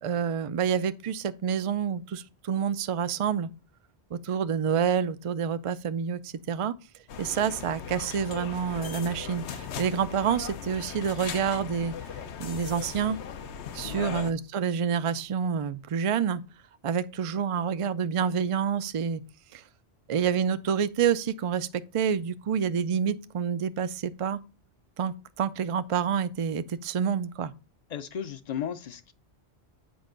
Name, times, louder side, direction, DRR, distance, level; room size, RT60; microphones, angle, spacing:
voice 1, 0.0-3.5 4.1-6.7 7.2-11.9 12.4-13.2 13.7-16.4 16.8-19.2 19.5-19.6 20.1-24.4 25.0-27.5, right 7 dB, 60° right, 0.3 m, -28 dB
sound 1, 7.1-14.3, left 7 dB, 85° left, 1.0 m, -38 dB
voice 2, 13.8-14.2 27.9-29.1, left 8 dB, 50° left, 0.6 m, -35 dB
7.8 x 5.2 x 3.8 m
omnidirectional pair, 1.1 m